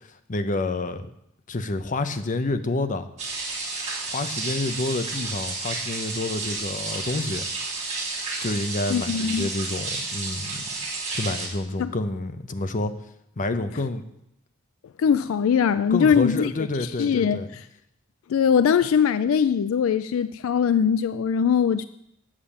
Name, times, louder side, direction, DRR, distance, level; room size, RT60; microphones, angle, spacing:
voice 1, 0.0-1.1 1.5-3.1 4.1-7.5 8.4-10.7 11.1-12.9 13.4-14.0 15.9-17.5, left 2 dB, 40° left, 9 dB, 0.7 m, -28 dB
sound 1, 3.2-11.5, right 3 dB, 35° right, 2.5 m, -31 dB
voice 2, 8.9-9.5 11.8-11.9 15.0-16.5 16.8-17.4 18.3-21.9, left 7 dB, 75° left, 14 dB, 0.3 m, -21 dB
8.5 x 7.4 x 7.3 m, 0.78 s
head